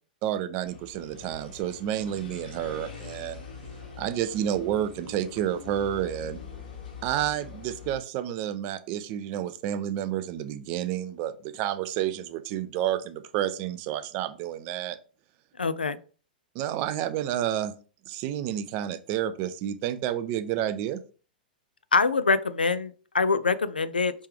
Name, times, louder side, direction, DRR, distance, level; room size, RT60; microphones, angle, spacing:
voice 1, 0.2-3.4 4.0-6.4 7.0-15.0 16.5-17.7 18.1-21.0, right 11 dB, 40° right, 12 dB, 0.4 m, -30 dB
sound 1, 0.6-8.0, left 5 dB, 65° left, 1.3 m, -44 dB
voice 2, 15.6-16.0 21.9-24.1, left 4 dB, 85° left, 13 dB, 0.3 m, -24 dB
3.3 x 3.1 x 3.4 m, 0.39 s
figure-of-eight pair, 105°, 5 cm